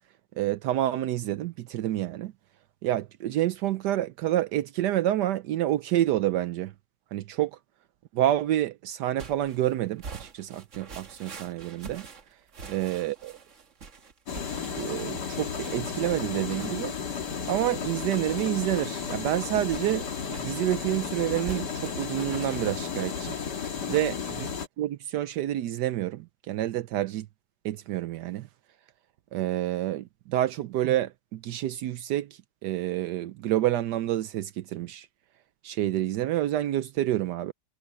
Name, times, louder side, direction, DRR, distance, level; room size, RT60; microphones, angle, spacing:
voice 1, 0.3-2.3 2.8-6.7 7.1-7.6 8.1-12.1 12.6-13.4 14.7-16.9 17.5-23.4 23.9-24.1 24.8-27.3 27.6-28.5 29.3-35.1 35.6-37.5, right 13 dB, 80° right, 1.2 m, -28 dB
sound 1, 9.2-23.5, right 4 dB, 45° right, 1.7 m, -46 dB
sound 2, 14.3-24.7, left 6 dB, 75° left, 2.4 m, -33 dB
omnidirectional pair, 1.8 m